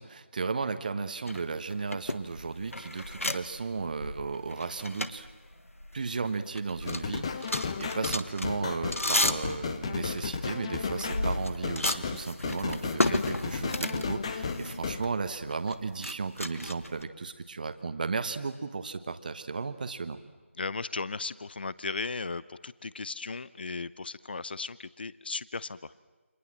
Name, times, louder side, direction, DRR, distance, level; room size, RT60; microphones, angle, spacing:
voice 1, 0.0-5.3 5.9-20.2, right 4 dB, 40° right, 10 dB, 1.4 m, -35 dB
sound 1, 1.3-6.3 6.5-17.0, left 1 dB, 90° left, 1.6 m, -34 dB
sound 2, 6.9-15.1, left 5 dB, 25° left, 1.2 m, -34 dB
voice 2, 20.5-25.9, left 4 dB, 45° left, 18 dB, 0.8 m, -36 dB
29.0 x 25.5 x 7.6 m, 1.3 s
figure-of-eight pair, 165°, 7 cm